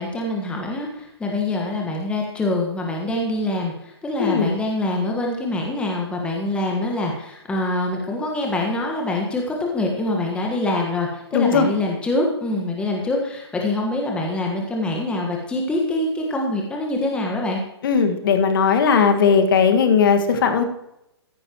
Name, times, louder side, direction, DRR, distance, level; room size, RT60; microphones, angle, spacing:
voice 1, 0.0-17.6, left 2 dB, 5° left, 0 dB, 1.5 m, -25 dB
voice 2, 4.2-4.5 11.3-11.7 17.8-20.6, left 6 dB, 50° left, 6 dB, 1.8 m, -17 dB
14.5 x 9.8 x 3.0 m, 0.84 s
hypercardioid pair, 135°, 14 cm